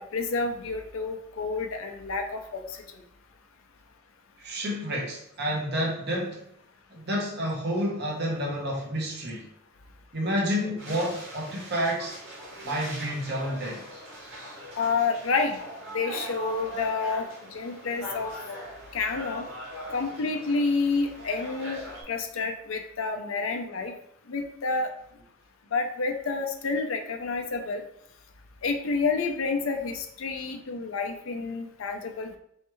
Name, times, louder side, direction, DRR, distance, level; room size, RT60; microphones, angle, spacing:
voice 1, 0.0-3.0 14.8-15.6 15.9-18.3 18.9-19.5 19.9-24.0 24.3-24.9 25.7-27.8 28.6-32.4, left 4 dB, 85° left, 5 dB, 0.5 m, -29 dB
voice 2, 4.4-6.4 6.9-9.5 10.1-12.1 12.6-13.8, equal, 55° right, -3 dB, 1.0 m, -29 dB
sound 1, 10.8-22.0, equal, 75° right, 1.6 m, -41 dB
4.5 x 3.2 x 3.1 m, 0.74 s
head